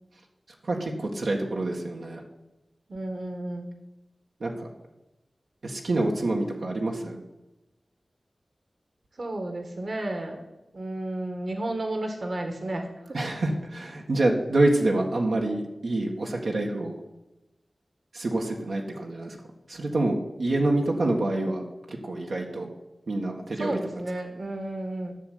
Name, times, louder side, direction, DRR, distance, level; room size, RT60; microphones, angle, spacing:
voice 1, 0.6-2.2 4.4-4.7 5.6-7.2 13.1-16.9 18.1-19.4 19.7-22.7 23.1-23.7, right 2 dB, 80° right, 0 dB, 1.9 m, -27 dB
voice 2, 2.9-3.8 9.2-10.4 10.7-12.9 23.6-25.1, right 1 dB, 55° right, 5 dB, 1.9 m, -32 dB
13.0 x 6.5 x 9.5 m, 0.99 s
wide cardioid pair, 90°, 0 cm